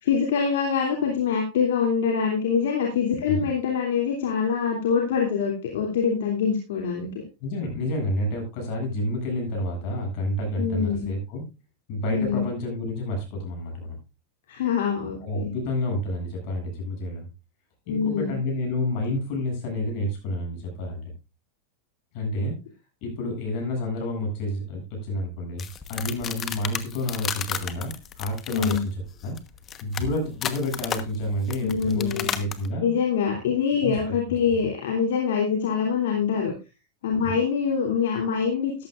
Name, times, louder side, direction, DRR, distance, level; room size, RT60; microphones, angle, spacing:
voice 1, 0.0-7.2 10.6-11.1 12.1-12.4 14.5-15.5 17.9-18.3 28.5-28.8 31.6-32.3 32.8-36.5 37.0-38.9, left 6 dB, 75° left, 0 dB, 2.9 m, -24 dB
voice 2, 7.4-11.4 11.9-14.0 15.2-17.3 17.9-21.1 22.1-22.6 23.0-28.9 29.2-29.4 29.8-33.0 33.8-34.2 34.5-34.6 37.2-37.3, left 1 dB, 55° left, 2 dB, 7.8 m, -29 dB
sound 1, 25.6-32.7, left 8 dB, 30° left, 1.2 m, -33 dB
14.0 x 11.5 x 2.5 m, 0.28 s
supercardioid pair, 120°, 0 cm